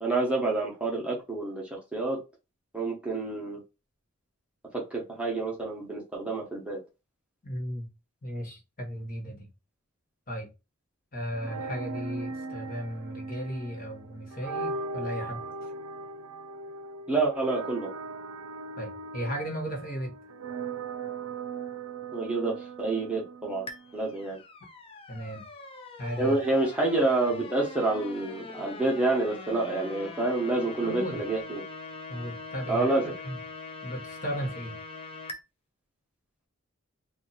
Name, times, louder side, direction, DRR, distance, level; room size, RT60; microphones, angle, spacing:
voice 1, 0.0-2.2 2.7-3.6 4.7-6.8 17.1-17.9 22.1-23.6 23.9-24.4 26.2-31.6 32.7-33.1, right 2 dB, 5° right, 1.0 m, -28 dB
voice 2, 7.4-7.9 8.2-9.5 10.3-10.5 11.1-15.4 18.8-20.1 25.1-25.5 26.0-26.4 30.8-31.2 32.1-32.9 33.2-33.4 33.8-34.8, equal, 45° left, 1.3 m, -35 dB
sound 1, 11.3-24.3, right 3 dB, 90° right, 0.4 m, -39 dB
sound 2, 23.7-35.4, left 3 dB, 25° left, 0.5 m, -43 dB
2.8 x 2.7 x 4.0 m
head